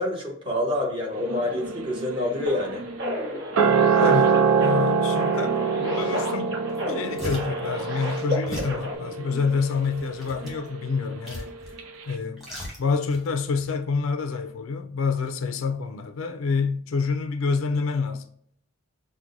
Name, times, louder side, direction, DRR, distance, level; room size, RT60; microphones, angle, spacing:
voice 1, 0.0-2.9, left 1 dB, 25° right, 1.0 m, -27 dB
sound 1, 1.1-11.5 11.8-11.9, right 5 dB, 85° right, 0.6 m, -25 dB
sound 2, 2.5-9.0, left 1 dB, 60° right, 1.0 m, -33 dB
voice 2, 4.0-6.6 6.9-11.5 12.1-12.5 12.8-18.3, left 4 dB, 75° left, 0.4 m, -27 dB
sound 3, 6.4-6.5 6.7-7.7 8.5-8.8 9.5-10.7 11.3-11.8 12.1-13.3 13.6-13.7, left 1 dB, ahead, 1.1 m, -37 dB
5.9 x 2.1 x 2.5 m
head